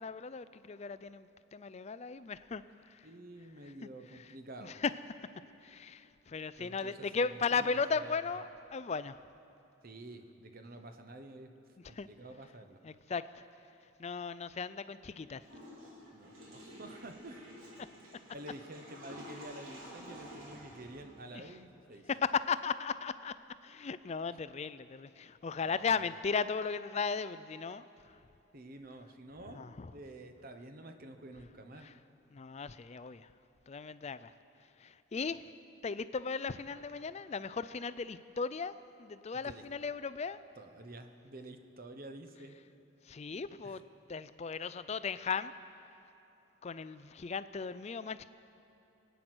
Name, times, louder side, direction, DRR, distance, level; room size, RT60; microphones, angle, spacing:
voice 1, 0.0-3.1 3.6-3.7 4.1-4.3 4.6-4.9 5.6-9.2 11.9-12.1 12.8-13.4 14.0-15.4 21.3-21.6 22.1-23.3 23.6-28.2 29.5-29.9 31.8-31.9 32.3-33.3 33.7-34.3 34.8-35.4 35.8-38.7 39.0-40.4 43.0-43.8 44.1-45.5 46.6-48.2, left 5 dB, 30° left, 14 dB, 0.4 m, -36 dB
voice 2, 3.0-4.7 6.6-8.4 9.8-11.5 11.8-12.8 16.1-17.5 18.3-22.1 25.6-26.0 28.5-31.9 39.3-39.6 40.6-42.6 43.6-43.8, right 1 dB, 45° right, 7 dB, 1.0 m, -49 dB
Water / Toilet flush, 15.4-21.6, equal, 80° right, 3.5 m, -51 dB
24.0 x 9.3 x 6.2 m, 2.9 s
head